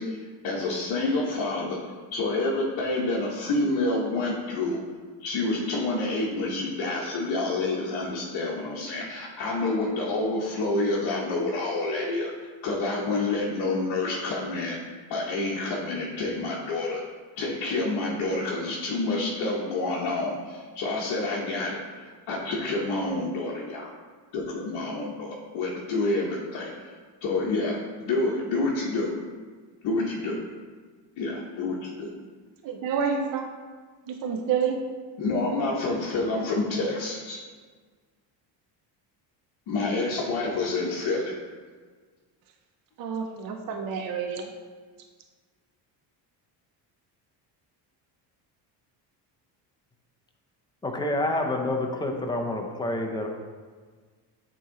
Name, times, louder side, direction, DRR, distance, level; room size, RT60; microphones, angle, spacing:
voice 1, 0.0-1.8 2.1-4.8 5.2-12.3 12.6-14.8 15.1-17.0 17.4-23.9 24.3-26.9 27.2-29.1 29.8-30.4 31.2-32.1 35.2-37.4 39.7-41.3, left 2 dB, 60° left, -5 dB, 0.9 m, -28 dB
voice 2, 32.6-33.5 34.1-34.8 43.0-44.5, right 6 dB, 50° right, 4 dB, 0.6 m, -28 dB
voice 3, 50.8-53.3, left 1 dB, 10° left, 2 dB, 0.4 m, -28 dB
8.4 x 3.0 x 3.7 m, 1.5 s
cardioid pair, 135°, 45 cm